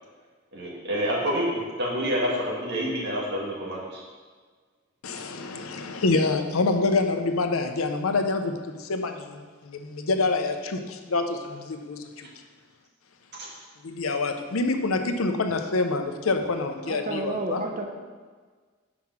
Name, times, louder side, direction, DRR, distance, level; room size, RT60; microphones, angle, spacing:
voice 1, 0.5-4.0 13.4-13.5, equal, 55° right, -4 dB, 1.8 m, -28 dB
voice 2, 5.0-12.3 13.8-17.6, left 3 dB, 85° left, 6 dB, 0.7 m, -26 dB
voice 3, 16.8-17.9, right 2 dB, 40° right, 3 dB, 0.8 m, -30 dB
5.8 x 4.9 x 5.9 m, 1.5 s
head